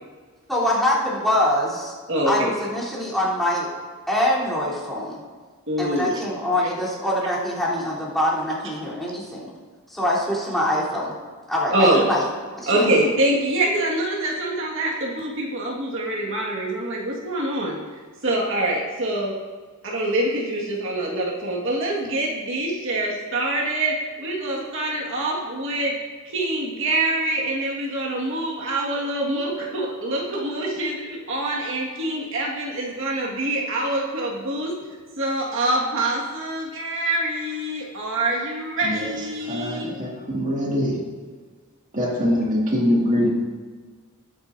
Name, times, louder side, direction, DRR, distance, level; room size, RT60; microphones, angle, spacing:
voice 1, 0.5-1.9 2.3-3.7 4.1-5.2 5.8-9.5 9.9-11.1 11.5-12.2 12.6-13.0, left 1 dB, ahead, -9 dB, 3.4 m, -24 dB
voice 2, 2.1-2.5 5.7-6.2 11.7-12.0 12.7-17.8 18.2-19.4 19.8-26.0 26.3-34.7 35.2-39.9, right 1 dB, 60° right, -3 dB, 1.8 m, -25 dB
voice 3, 39.5-41.0 41.9-43.3, equal, 35° right, -3 dB, 2.2 m, -23 dB
20.5 x 8.8 x 2.7 m, 1.5 s
head